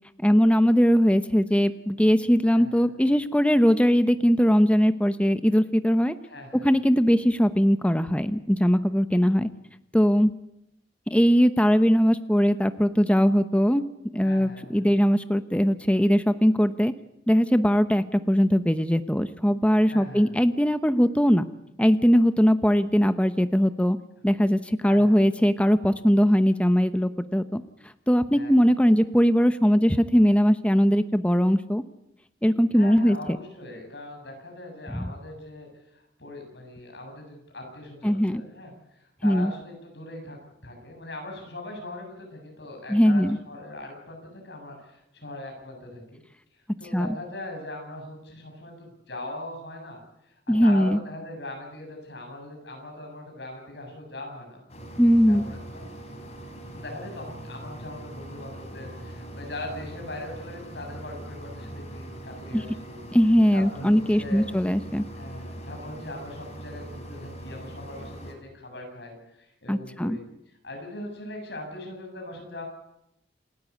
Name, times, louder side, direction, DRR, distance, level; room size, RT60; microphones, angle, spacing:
voice 1, 0.2-6.1 6.6-9.5 9.9-10.3 11.1-13.8 14.1-16.9 17.3-21.4 21.8-24.0 24.2-27.6 28.1-31.8 32.4-33.2 34.9-35.1 38.0-38.4 39.2-39.5 42.9-43.4 46.9-47.1 50.5-51.0 55.0-55.4 62.5-62.6 63.1-65.0 69.7-70.2, equal, 5° left, 10 dB, 0.8 m, -20 dB
voice 2, 2.5-2.9 6.2-6.7 14.2-15.0 19.8-20.3 24.8-25.2 28.3-28.6 32.7-46.2 46.8-50.0 50.3-54.6 55.3-55.9 56.7-63.0 63.5-64.5 65.1-70.2 70.6-72.7, left 1 dB, 65° left, 2 dB, 7.8 m, -40 dB
sound 1, 54.7-68.3, right 1 dB, 35° left, 4.1 m, -41 dB
28.0 x 13.5 x 8.5 m, 0.82 s
head